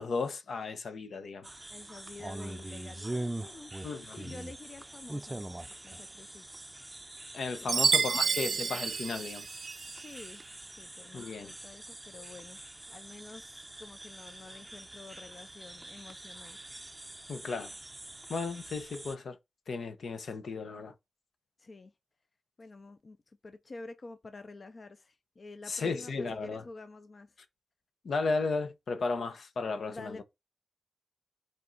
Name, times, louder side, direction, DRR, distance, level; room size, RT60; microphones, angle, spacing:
voice 1, 0.0-1.5 3.8-4.3 7.3-9.5 11.1-11.5 17.3-17.7 18.3-19.4 19.7-20.9 25.7-26.7 28.0-30.2, left 4 dB, 70° left, 1.0 m, -34 dB
sound 1, 1.4-19.2, right 1 dB, 15° right, 0.6 m, -44 dB
voice 2, 1.7-3.7 4.1-6.7 7.6-8.4 9.9-12.6 12.9-16.6 21.6-21.9 22.6-27.3 29.9-30.2, left 3 dB, 40° left, 0.6 m, -49 dB
Chime, 7.7-10.0, right 5 dB, 60° right, 0.4 m, -29 dB
5.4 x 4.5 x 4.0 m
wide cardioid pair, 150°, 0 cm